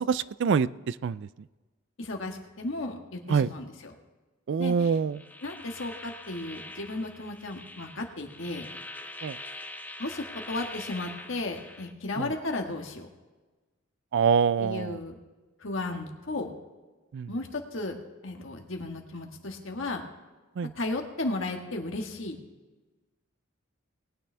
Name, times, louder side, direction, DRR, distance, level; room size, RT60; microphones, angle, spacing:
voice 1, 0.1-1.3 3.3-3.5 4.5-5.2 9.2-9.4 12.2-12.3 14.1-15.0 17.1-17.3 20.6-20.7, right 6 dB, 60° right, 18 dB, 0.3 m, -25 dB
voice 2, 2.0-3.9 4.6-5.0 5.4-8.7 10.0-13.1 14.6-15.2 15.6-16.5 17.3-18.0 18.2-20.0 20.7-22.4, left 2 dB, 65° left, 3 dB, 1.6 m, -34 dB
sound 1, 5.1-11.9, left 2 dB, 10° left, 0.6 m, -43 dB
20.0 x 9.5 x 3.4 m, 1.2 s
head